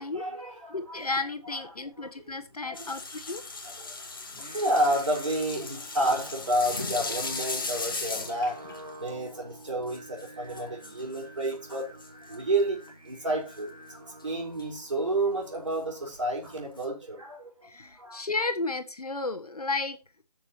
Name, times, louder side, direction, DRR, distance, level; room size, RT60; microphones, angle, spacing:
voice 1, 0.0-0.8 2.6-2.9 3.6-4.0 4.5-8.6 8.9-11.9 12.3-12.8 13.0-13.7 14.0-17.7 17.9-18.2, right 1 dB, 50° right, 4.7 m, -30 dB
voice 2, 0.7-3.4 17.6-20.0, left 3 dB, 70° left, 1.6 m, -33 dB
sound 1, 2.7-12.6 13.5-13.6 14.0-14.2 14.6-14.7 15.5-15.6 16.5-16.8, left 3 dB, 35° left, 1.7 m, -37 dB
Singing, 4.2-16.4, right 1 dB, 65° right, 3.3 m, -49 dB
14.0 x 6.8 x 3.0 m
figure-of-eight pair, 170°, 20 cm